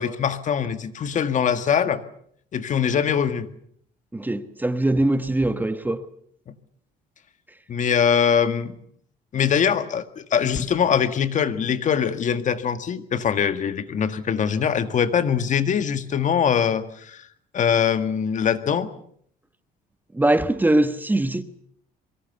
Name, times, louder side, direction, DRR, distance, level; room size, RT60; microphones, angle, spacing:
voice 1, 0.0-2.0 2.5-3.5 7.7-8.8 9.3-17.2 17.5-18.9, left 7 dB, 45° left, 1.8 m, -22 dB
voice 2, 4.1-6.1 20.1-21.4, right 1 dB, 10° right, 1.3 m, -22 dB
25.5 x 23.0 x 7.0 m
cardioid pair, 110°, 17 cm